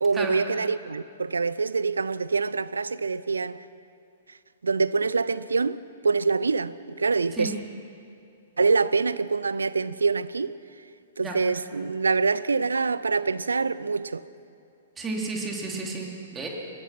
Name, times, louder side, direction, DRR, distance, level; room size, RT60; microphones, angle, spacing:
voice 1, 0.0-3.6 4.6-7.5 8.6-10.6 11.2-14.2, right 4 dB, 70° right, 0.6 m, -25 dB
voice 2, 15.0-16.5, right 3 dB, 15° right, 3.4 m, -32 dB
24.0 x 21.5 x 5.9 m
figure-of-eight pair, 115°, 0 cm